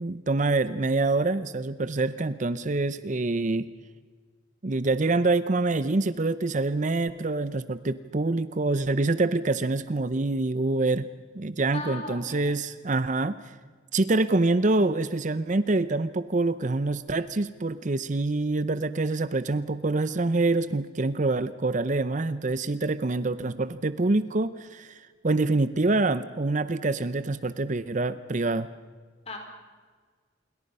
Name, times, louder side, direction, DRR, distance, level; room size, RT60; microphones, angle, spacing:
voice 1, 0.0-3.7 4.6-11.1 11.3-13.5 13.9-28.7, right 2 dB, 40° right, 14 dB, 0.6 m, -26 dB
voice 2, 11.7-12.5 29.3-29.4, left 3 dB, 30° left, 3 dB, 4.7 m, -37 dB
28.0 x 22.5 x 5.5 m, 1.5 s
head